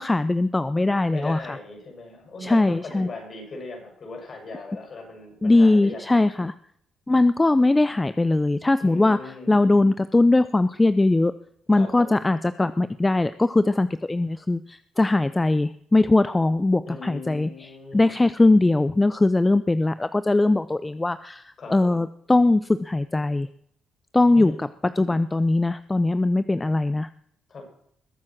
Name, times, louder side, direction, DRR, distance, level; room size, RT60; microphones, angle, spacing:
voice 1, 0.0-1.4 2.4-3.1 5.4-6.5 7.1-9.2 9.5-11.3 11.7-23.5 24.1-24.7 25.0-27.1, left 2 dB, 15° left, 13 dB, 0.5 m, -20 dB
voice 2, 1.1-6.2 7.1-7.2 8.8-9.6 11.7-12.3 16.9-18.2 21.6-22.1 24.3-24.7 27.5-27.7, left 3 dB, 45° left, 2 dB, 6.5 m, -38 dB
21.0 x 7.6 x 6.0 m, 0.67 s
cardioid pair, 90°, 0 cm